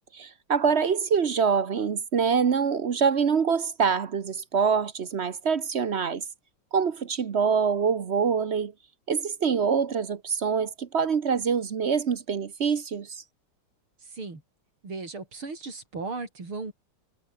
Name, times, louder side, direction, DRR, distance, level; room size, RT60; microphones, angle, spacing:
voice 1, 0.1-6.2 6.7-8.7 9.1-13.2, right 6 dB, 45° right, 0.9 m, -25 dB
voice 2, 14.0-14.4 14.8-16.7, right 3 dB, 80° right, 6.2 m, -36 dB
omnidirectional pair, 2.3 m